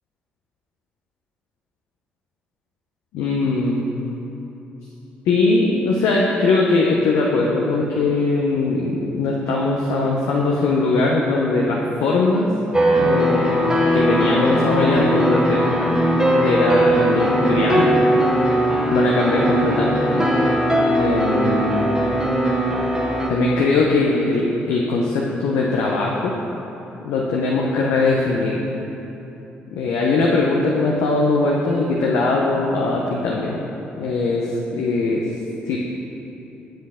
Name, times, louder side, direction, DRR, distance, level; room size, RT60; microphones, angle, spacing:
voice 1, 3.1-3.8 5.3-12.5 13.0-16.0 16.4-18.0 18.9-20.3 21.0-21.8 23.3-26.3 27.0-28.6 29.7-33.6 34.0-35.2 35.7-35.8, left 3 dB, 70° left, -2 dB, 0.7 m, -20 dB
sound 1, 12.7-23.3, right 1 dB, 15° right, 1.4 m, -19 dB
8.9 x 7.2 x 3.6 m, 3.0 s
hypercardioid pair, 45°, 5 cm